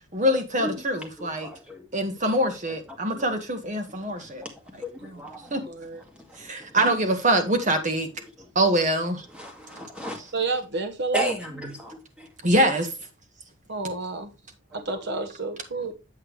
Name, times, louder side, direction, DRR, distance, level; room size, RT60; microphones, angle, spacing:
voice 1, 0.1-1.5 1.9-4.5 5.5-5.6 6.4-8.1 8.6-9.3 12.4-12.9, right 1 dB, 40° right, 1.8 m, -24 dB
voice 2, 1.2-1.8 2.9-3.2 4.4-4.5 4.8-5.5 6.3-6.5 8.4-8.5 9.3-10.2 11.1-12.3 14.7-14.8, equal, 5° right, 2.1 m, -35 dB
voice 3, 5.6-6.0 10.3-11.3 13.7-14.3 14.7-15.9, right 3 dB, 60° right, 1.2 m, -30 dB
8.5 x 7.5 x 3.2 m
head